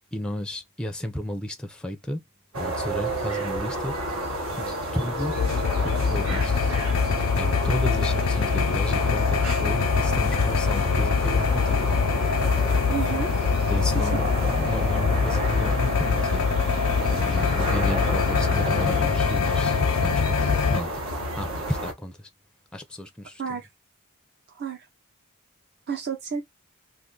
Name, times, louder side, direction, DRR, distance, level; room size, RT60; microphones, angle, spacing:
voice 1, 0.1-2.2 2.5-3.9 4.6-5.3 5.8-6.6 7.4-11.9 13.7-20.9 21.4-22.3 22.7-23.4, left 1 dB, 5° left, 0.5 m, -33 dB
sound 1, 2.5-21.9, right 1 dB, 70° right, 1.1 m, -31 dB
sound 2, 5.3-20.8, left 5 dB, 80° left, 0.5 m, -24 dB
voice 2, 12.9-13.3 13.6-14.2 23.4-23.7 24.5-24.9 25.9-26.4, right 7 dB, 50° right, 0.6 m, -32 dB
sound 3, 14.0-19.1, right 1 dB, 30° right, 1.1 m, -33 dB
2.6 x 2.5 x 3.7 m
head